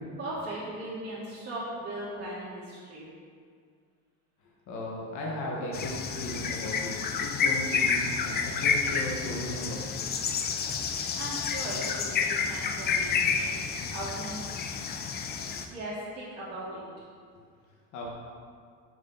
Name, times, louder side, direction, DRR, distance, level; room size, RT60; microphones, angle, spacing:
voice 1, 0.2-3.1 11.1-13.5 13.9-14.4 15.7-16.8, right 1 dB, 30° right, -10 dB, 1.8 m, -38 dB
voice 2, 4.7-5.9 6.2-9.8 17.9-18.1, left 1 dB, 60° left, -3 dB, 1.5 m, -36 dB
sound 1, 5.7-15.7, left 6 dB, 30° left, 0.4 m, -30 dB
6.2 x 4.9 x 5.6 m, 2.1 s
cardioid pair, 150°, 33 cm